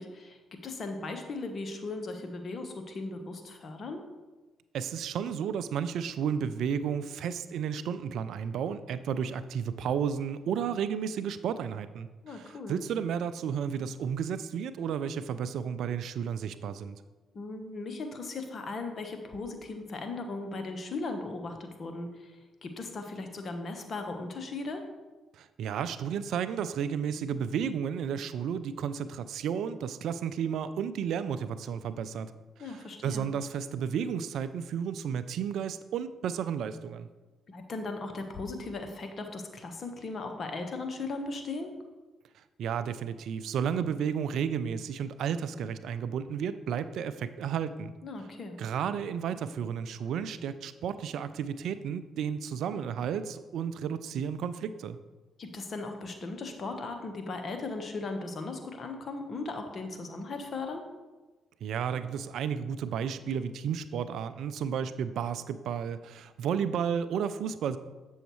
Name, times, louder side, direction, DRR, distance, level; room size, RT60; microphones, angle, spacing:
voice 1, 0.0-4.0 12.2-12.8 17.3-24.8 32.6-33.3 37.5-41.7 48.0-48.6 55.4-60.8, left 3 dB, 50° left, 5 dB, 1.0 m, -37 dB
voice 2, 4.7-17.0 25.3-32.3 32.6-37.1 42.6-47.9 48.6-55.0 61.6-67.8, right 7 dB, 70° right, 13 dB, 0.3 m, -32 dB
7.9 x 6.3 x 3.1 m, 1.2 s
hypercardioid pair, 50°, 0 cm